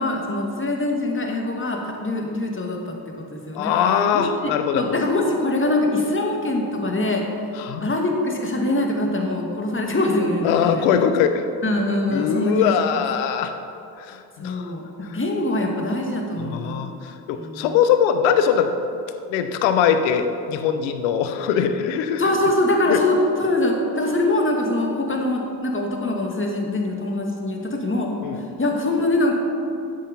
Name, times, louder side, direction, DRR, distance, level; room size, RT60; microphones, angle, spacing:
voice 1, 0.0-3.7 4.1-7.2 7.8-10.9 11.6-13.0 14.4-16.9 17.3-17.8 22.2-28.1 28.4-29.4, left 1 dB, 25° left, 1 dB, 2.2 m, -23 dB
voice 2, 3.6-5.0 7.6-7.9 10.4-11.4 12.1-13.5 14.0-14.7 15.1-15.2 16.4-18.7 19.3-22.2 22.9-23.0 28.2-28.4, left 8 dB, 80° left, 8 dB, 0.9 m, -21 dB
10.5 x 7.7 x 5.4 m, 2.6 s
hypercardioid pair, 50°, 45 cm